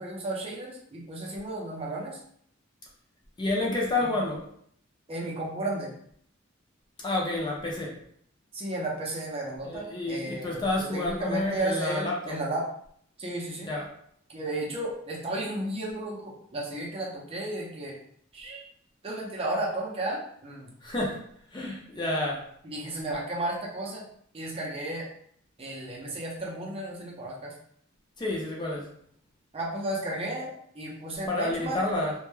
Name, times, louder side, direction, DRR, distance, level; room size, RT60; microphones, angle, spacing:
voice 1, 0.0-2.2 4.0-4.1 5.1-5.9 8.5-12.7 13.2-13.7 14.3-18.0 18.3-18.6 19.0-20.7 22.6-24.0 24.3-25.1 25.6-27.5 29.5-31.8, right 1 dB, 30° right, -3 dB, 0.5 m, -33 dB
voice 2, 3.4-4.4 7.0-7.9 9.6-12.3 13.7-13.9 20.8-21.2 21.5-22.4 28.2-28.9 31.3-32.1, left 2 dB, 20° left, -3 dB, 0.5 m, -29 dB
2.2 x 2.1 x 3.1 m, 0.65 s
head